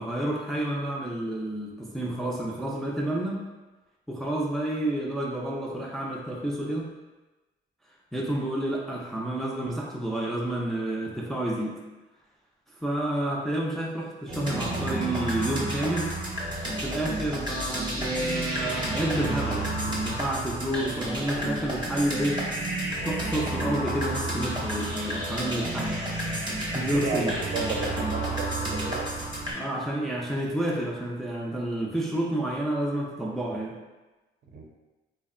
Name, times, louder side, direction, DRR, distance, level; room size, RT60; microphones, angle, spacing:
voice 1, 0.0-3.4 4.1-6.9 8.1-11.8 12.8-16.1 16.8-22.4 23.0-25.9 26.4-27.3 29.5-33.8, right 1 dB, ahead, -3 dB, 0.3 m, -30 dB
sound 1, 14.3-29.5, right 1 dB, 25° right, 0.7 m, -31 dB
voice 2, 26.7-29.1 34.5-34.6, right 4 dB, 60° right, 0 dB, 0.6 m, -33 dB
2.7 x 2.0 x 2.4 m, 1.1 s
cardioid pair, 90°, 20 cm